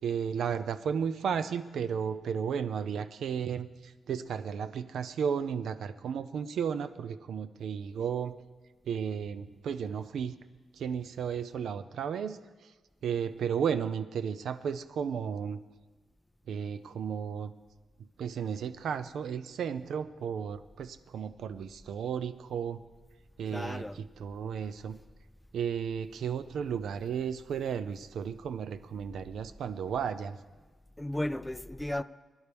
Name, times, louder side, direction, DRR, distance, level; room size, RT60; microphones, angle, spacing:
voice 1, 0.0-8.3 8.9-10.3 10.7-12.7 13.0-15.6 16.5-17.5 18.2-22.8 23.4-25.0 25.5-30.4, right 7 dB, 80° right, 0.6 m, -34 dB
voice 2, 23.5-24.0 31.0-32.0, left 1 dB, 10° left, 0.3 m, -34 dB
21.5 x 11.0 x 3.5 m
cardioid pair, 115°, 0 cm